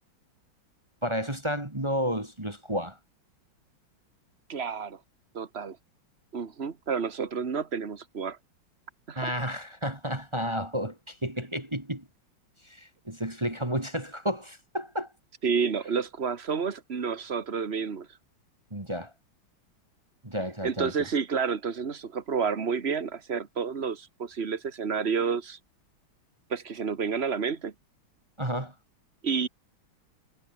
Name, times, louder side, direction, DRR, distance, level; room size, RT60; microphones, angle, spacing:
voice 1, 1.0-3.0 9.2-12.1 12.6-15.1 18.7-19.1 20.2-20.9 28.4-28.7, equal, 15° right, 2.2 m, -31 dB
voice 2, 4.5-5.0 5.3-5.8 6.3-8.4 9.1-9.3 15.4-18.1 20.6-25.6 26.5-27.7 29.2-29.5, right 6 dB, 35° right, 1.8 m, -30 dB
omnidirectional pair, 2.2 m